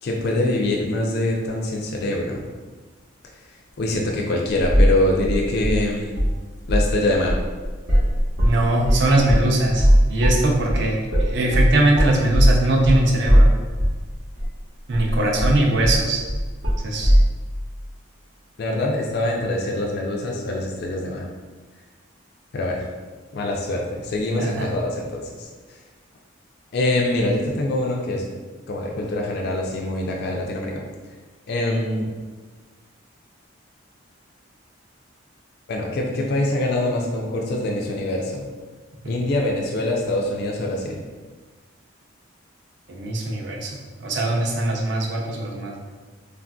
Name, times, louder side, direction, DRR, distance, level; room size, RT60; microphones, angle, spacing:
voice 1, 0.0-2.4 3.8-6.3 6.7-7.4 15.1-15.5 18.6-21.2 22.5-22.9 23.3-25.8 26.7-28.2 28.7-30.7 31.5-32.1 35.7-38.4 39.1-41.0, left 1 dB, 50° left, -1 dB, 0.3 m, -24 dB
sound 1, 4.7-5.0 5.2-6.4 6.6-6.9 7.3-14.0 14.4-14.5 14.9-17.3, equal, 75° right, 0.9 m, -18 dB
voice 2, 8.4-13.5 14.9-16.2 16.8-17.1 24.4-24.7 42.9-43.7 44.0-45.8, right 2 dB, 55° right, 0 dB, 0.5 m, -21 dB
3.3 x 2.5 x 2.2 m, 1.3 s
head